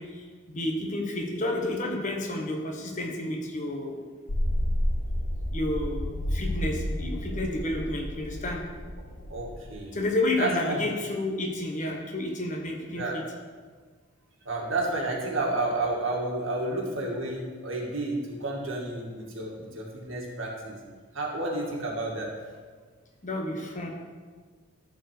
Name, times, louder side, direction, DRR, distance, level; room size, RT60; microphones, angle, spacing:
voice 1, 0.0-4.0 5.5-8.6 9.9-13.2 23.2-23.9, left 1 dB, 35° left, 1 dB, 1.3 m, -30 dB
sound 1, 4.3-9.7, equal, 70° left, 1.5 m, -30 dB
voice 2, 9.3-10.0 10.4-10.8 12.9-13.2 14.5-20.8 21.1-22.3, right 2 dB, 60° right, -2 dB, 2.2 m, -31 dB
13.5 x 4.7 x 6.7 m, 1.5 s
head